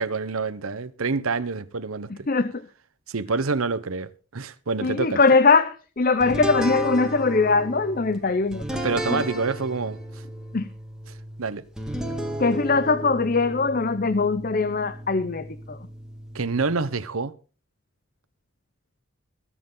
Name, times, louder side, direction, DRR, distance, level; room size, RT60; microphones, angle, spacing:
voice 1, 0.0-2.3 3.1-5.2 8.7-10.2 11.1-11.7 16.3-17.3, right 4 dB, 85° right, 0.9 m, -27 dB
voice 2, 2.3-2.7 4.8-8.6 9.1-9.2 10.5-10.7 12.4-15.8, left 4 dB, 40° left, 0.7 m, -21 dB
sound 1, 6.2-16.8, right 1 dB, 5° right, 1.8 m, -34 dB
21.5 x 8.0 x 3.8 m
head